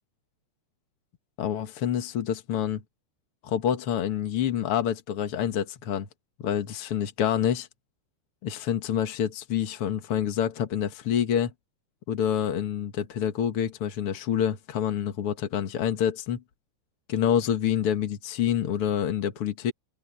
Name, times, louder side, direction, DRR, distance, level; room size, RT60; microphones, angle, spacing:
voice 1, 1.4-2.8 3.4-6.1 6.4-7.7 8.4-11.5 12.1-16.4 17.1-19.7, left 9 dB, 65° left, 1.4 m, -27 dB
omnidirectional pair, 4.9 m